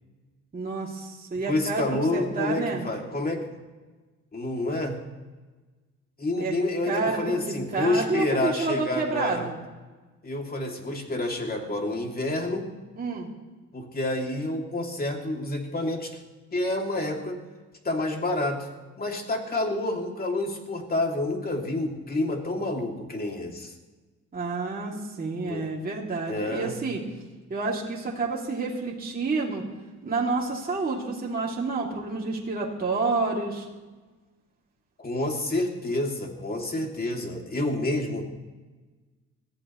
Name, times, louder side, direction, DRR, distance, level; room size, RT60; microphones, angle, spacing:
voice 1, 0.5-2.8 6.4-6.5 6.8-9.6 13.0-13.3 24.3-27.0 27.5-29.6 30.0-33.7, right 3 dB, 30° right, -3 dB, 2.8 m, -29 dB
voice 2, 1.5-3.5 4.3-5.0 6.2-9.5 10.2-12.7 13.7-16.2 16.5-17.4 17.8-18.7 19.0-23.7 25.4-25.7 26.3-26.8 35.0-38.4, left 2 dB, 30° left, 2 dB, 2.8 m, -28 dB
21.5 x 14.5 x 3.2 m, 1.3 s
cardioid pair, 90°, 30 cm